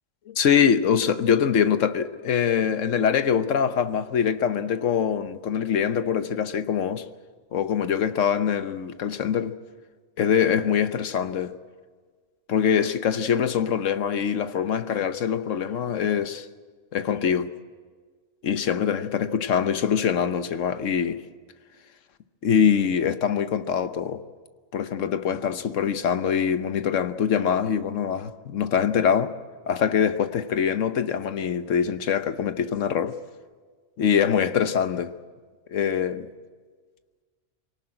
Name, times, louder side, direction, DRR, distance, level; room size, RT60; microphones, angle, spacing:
voice 1, 0.3-7.0 7.5-9.5 10.2-11.5 12.5-16.5 16.9-17.5 18.4-21.2 22.4-24.2 24.7-29.3 29.7-33.2 34.0-35.1 35.7-36.3, left 7 dB, 90° left, 1.3 m, -24 dB
23.0 x 18.0 x 8.8 m
omnidirectional pair, 1.3 m